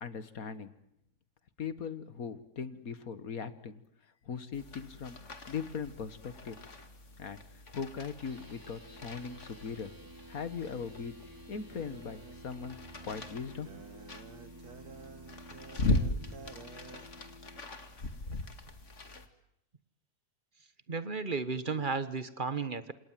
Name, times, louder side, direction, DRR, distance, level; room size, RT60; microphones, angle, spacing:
voice 1, 0.0-0.7 1.6-3.8 4.2-5.2 5.5-6.6 7.2-7.4 7.7-9.9 10.3-12.8 13.1-14.0, left 6 dB, 65° left, 13 dB, 2.0 m, -40 dB
sound 1, 4.5-19.3, left 2 dB, 50° left, 2.5 m, -39 dB
sound 2, 8.2-17.6, right 1 dB, 10° right, 3.9 m, -53 dB
sound 3, 11.7-17.1, right 5 dB, 85° right, 2.2 m, -52 dB
voice 2, 20.9-22.9, right 4 dB, 35° right, 13 dB, 1.3 m, -34 dB
28.0 x 27.5 x 7.6 m, 0.77 s
omnidirectional pair, 1.6 m